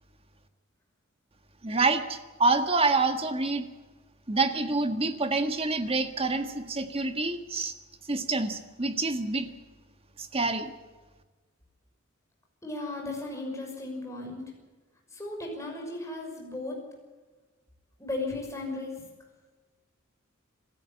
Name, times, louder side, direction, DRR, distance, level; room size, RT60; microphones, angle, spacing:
voice 1, 1.6-3.6 4.3-7.7 8.1-9.5 10.2-10.7, right 3 dB, 30° right, 7 dB, 1.7 m, -27 dB
voice 2, 12.6-14.4 15.1-16.8 18.0-19.0, left 2 dB, 15° left, 0 dB, 6.1 m, -35 dB
26.5 x 13.5 x 8.6 m, 1.3 s
head